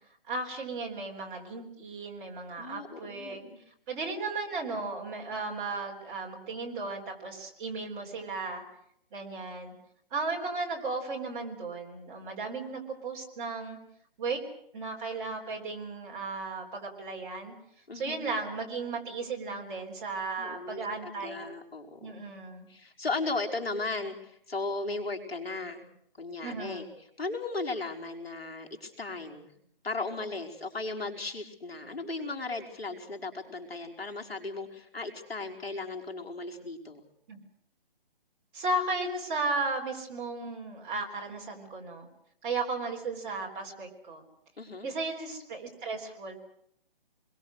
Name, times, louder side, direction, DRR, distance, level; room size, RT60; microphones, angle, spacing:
voice 1, 0.3-3.4 3.9-8.6 9.1-9.7 10.1-13.8 14.2-14.4 14.7-17.5 17.9-21.5 22.0-22.7 26.4-26.9 37.3-37.4 38.5-42.1 42.4-44.2 44.8-46.4, right 3 dB, 20° right, -1 dB, 3.6 m, -35 dB
voice 2, 2.6-3.6 17.9-18.3 20.4-22.3 22.7-25.9 26.2-26.9 27.2-29.5 29.8-37.0 44.6-44.9, left 3 dB, 85° left, 2 dB, 4.8 m, -36 dB
27.5 x 21.5 x 6.4 m, 0.69 s
hypercardioid pair, 160°, 29 cm